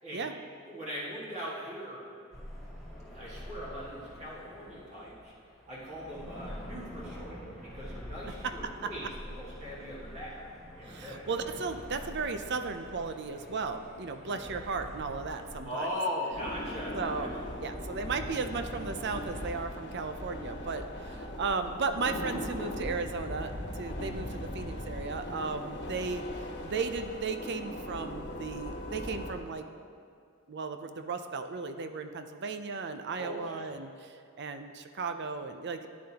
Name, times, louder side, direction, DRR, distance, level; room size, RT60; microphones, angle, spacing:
voice 1, 0.7-2.1 3.1-5.3 5.7-10.4 10.8-11.3 15.6-17.4 33.2-33.7, equal, 35° right, -7 dB, 2.0 m, -39 dB
sound 1, 2.3-15.6, equal, ahead, 2.4 m, -46 dB
voice 2, 10.9-15.9 16.9-17.3 17.6-29.7 30.5-35.9, right 4 dB, 55° right, 8 dB, 0.6 m, -35 dB
sound 2, 16.3-29.4, left 1 dB, 55° left, 1.3 m, -39 dB
14.0 x 9.5 x 2.9 m, 2.3 s
head